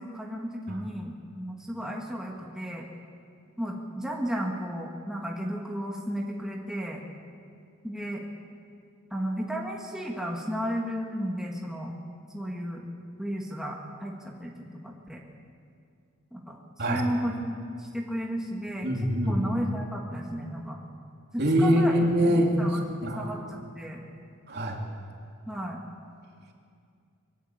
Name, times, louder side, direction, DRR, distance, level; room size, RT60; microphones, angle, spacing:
voice 1, 0.0-2.9 3.6-7.0 7.8-8.2 9.1-11.9 12.3-12.8 13.2-15.2 16.3-16.6 16.9-18.9 19.3-20.8 21.3-21.9 22.3-22.9 23.1-24.0 25.5-25.8, equal, 5° right, -2 dB, 2.1 m, -33 dB
voice 2, 18.8-19.5 21.4-23.3 24.5-24.8, equal, 50° right, 0 dB, 3.3 m, -24 dB
23.5 x 20.0 x 8.3 m, 2.4 s
head